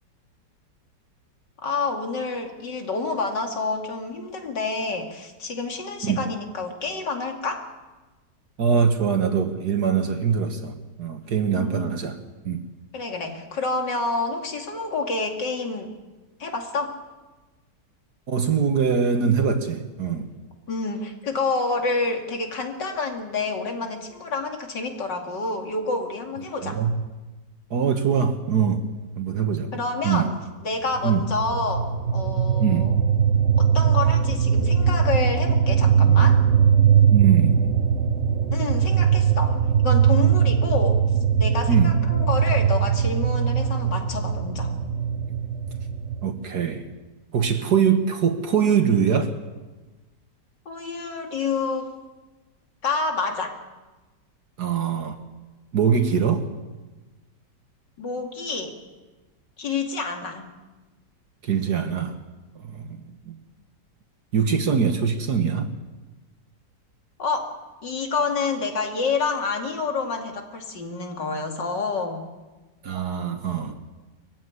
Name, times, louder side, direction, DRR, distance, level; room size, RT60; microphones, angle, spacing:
voice 1, 1.6-7.7 11.5-11.9 12.9-15.9 16.4-17.0 20.7-26.8 29.7-30.3 30.6-32.9 33.6-36.4 38.5-41.0 41.4-44.7 50.7-52.0 52.8-53.5 58.0-58.8 59.6-60.5 67.2-72.2, left 3 dB, 85° left, 3 dB, 3.1 m, -28 dB
voice 2, 8.6-12.2 12.4-12.6 18.3-20.3 26.6-26.9 27.7-28.8 29.2-29.7 30.0-30.3 31.0-31.2 32.6-32.9 37.1-37.7 41.7-41.9 46.2-46.9 47.3-49.3 54.6-55.2 55.7-56.5 61.4-62.2 62.6-63.4 64.3-65.7 72.8-73.8, right 7 dB, 65° right, 6 dB, 1.9 m, -23 dB
sound 1, 30.9-46.3, right 8 dB, 45° right, 1.5 m, -20 dB
22.5 x 15.0 x 9.6 m, 1.2 s
omnidirectional pair, 1.9 m